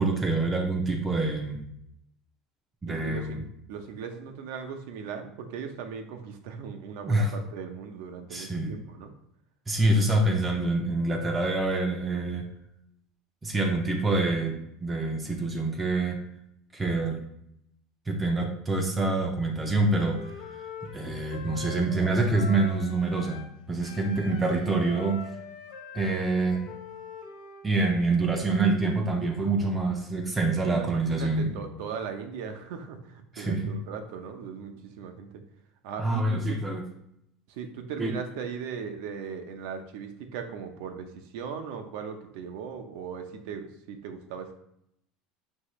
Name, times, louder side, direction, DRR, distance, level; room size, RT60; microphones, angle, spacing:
voice 1, 0.0-1.6 2.8-3.4 7.0-7.3 8.3-8.8 9.7-12.5 13.4-16.2 16.7-17.2 18.1-20.2 20.9-25.2 25.9-26.7 27.6-31.5 33.4-33.8 36.0-36.8 38.0-38.1, right 2 dB, 20° right, 1 dB, 0.5 m, -26 dB
voice 2, 2.9-9.1 30.6-35.3 35.8-36.6 37.5-44.5, right 6 dB, 75° right, 6 dB, 0.6 m, -38 dB
Wind instrument woodwind instrument, 19.9-23.5 23.8-27.7, left 6 dB, 90° left, 0.8 m, -43 dB
5.5 x 2.8 x 3.0 m, 0.76 s
supercardioid pair, 130°, 0 cm